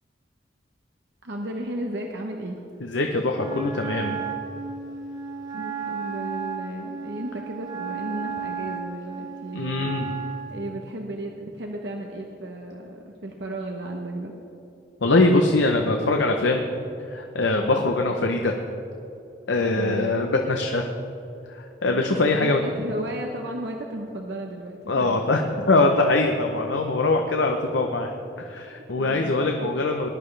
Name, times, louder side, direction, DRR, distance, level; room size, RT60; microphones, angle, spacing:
voice 1, 1.2-2.6 5.5-14.3 19.7-20.2 21.9-25.3 28.4-28.5 29.0-29.7, right 1 dB, 75° right, 1 dB, 0.9 m, -34 dB
voice 2, 2.8-4.2 9.5-10.1 15.0-16.6 17.1-18.5 19.5-20.9 21.5-22.6 24.9-30.1, left 2 dB, 85° left, 3 dB, 0.8 m, -22 dB
Wind instrument woodwind instrument, 3.3-10.6, right 6 dB, 20° right, 1.4 m, -34 dB
19.5 x 11.0 x 3.3 m, 2.8 s
head